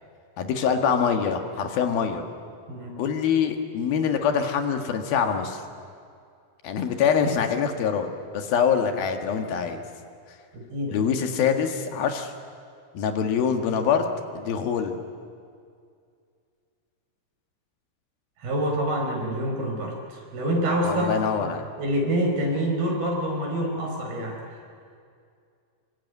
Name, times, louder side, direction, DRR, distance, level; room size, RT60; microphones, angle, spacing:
voice 1, 0.4-2.2 3.0-5.6 6.6-8.1 8.3-9.8 10.9-12.3 12.9-14.1 14.4-15.0 20.8-21.7, left 7 dB, 75° left, 5 dB, 3.6 m, -24 dB
voice 2, 10.5-11.0 18.4-21.5 21.8-24.6, right 1 dB, 75° right, 1 dB, 6.8 m, -27 dB
27.0 x 23.0 x 9.5 m, 2.3 s
omnidirectional pair, 4.3 m